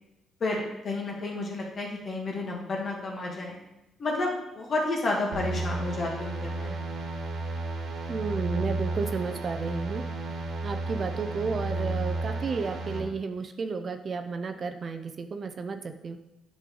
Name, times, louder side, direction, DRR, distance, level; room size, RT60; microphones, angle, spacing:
voice 1, 0.4-3.5 4.0-6.8, left 2 dB, 45° left, -1 dB, 2.1 m, -31 dB
sound 1, 5.3-13.0, right 2 dB, 80° right, 1.6 m, -32 dB
voice 2, 8.1-10.0 10.6-16.2, right 4 dB, 45° right, 7 dB, 0.6 m, -32 dB
9.3 x 5.4 x 3.9 m, 0.93 s
cardioid pair, 90°, 0 cm